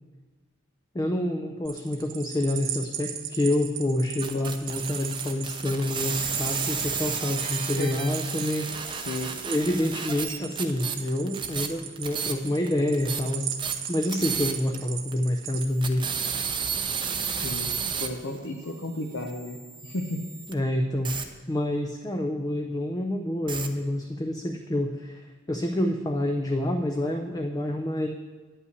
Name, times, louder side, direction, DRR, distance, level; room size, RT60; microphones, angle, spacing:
voice 1, 0.9-8.8 9.4-13.5 13.9-16.1 20.5-21.1 21.5-28.1, left 1 dB, 20° left, 4 dB, 0.5 m, -27 dB
sound 1, 1.6-15.6, right 9 dB, 65° right, 1.0 m, -37 dB
sound 2, 4.2-12.7 12.9-14.8 15.1-15.2 15.6-20.5 21.0-21.2 23.5-23.7, right 6 dB, 25° right, 0.6 m, -32 dB
voice 2, 7.4-8.0 9.1-9.4 17.4-20.3, left 1 dB, 65° left, 2 dB, 0.8 m, -34 dB
9.5 x 5.5 x 8.2 m, 1.4 s
head